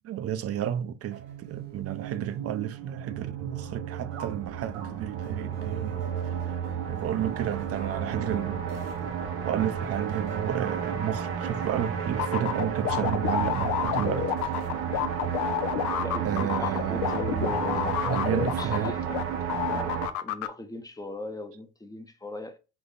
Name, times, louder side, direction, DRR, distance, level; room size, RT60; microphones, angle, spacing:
voice 1, 0.0-6.0 6.5-6.6 6.9-8.7 9.0-9.1 9.4-14.7 16.2-18.9, right 10 dB, 55° right, 0.6 m, -32 dB
sound 1, 1.1-20.1, right 8 dB, 85° right, 0.9 m, -32 dB
sound 2, 12.2-19.2 19.5-20.5, left 11 dB, 75° left, 0.5 m, -29 dB
voice 2, 15.9-19.2 19.7-22.6, left 2 dB, 10° left, 0.7 m, -39 dB
3.8 x 2.7 x 3.9 m
supercardioid pair, 80°, 29 cm